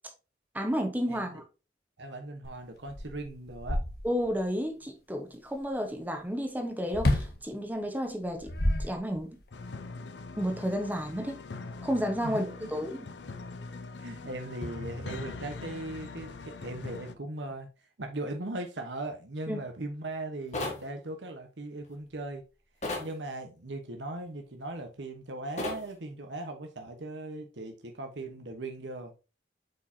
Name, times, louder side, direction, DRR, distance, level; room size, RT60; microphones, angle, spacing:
voice 1, 0.5-1.4 4.0-8.5 8.8-9.4 10.4-11.4 11.8-13.1 19.5-19.6, equal, 10° right, 1.1 m, -32 dB
voice 2, 1.1-1.4 2.0-3.8 11.1-11.2 12.2-12.7 14.0-17.7 18.0-22.4 23.0-29.1, right 2 dB, 80° right, 1.2 m, -39 dB
sound 1, 2.4-2.5 2.9-4.4 6.9-7.4 8.2-9.4, left 1 dB, 60° left, 1.4 m, -29 dB
sound 2, 9.5-17.1, left 3 dB, 80° left, 0.7 m, -42 dB
sound 3, 20.5-20.8 22.8-23.1 25.6-25.8, left 2 dB, 40° left, 1.8 m, -33 dB
7.9 x 4.8 x 2.8 m
head